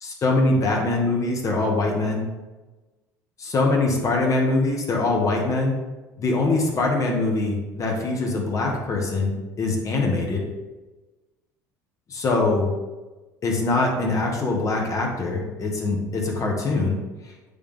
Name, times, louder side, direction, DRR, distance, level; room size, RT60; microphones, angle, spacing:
voice 1, 0.0-2.2 3.4-5.8 6.2-10.4 12.1-12.7 13.4-17.0, left 2 dB, 40° left, 0 dB, 1.7 m, -23 dB
8.6 x 3.6 x 3.5 m, 1.2 s
hypercardioid pair, 70°, 9 cm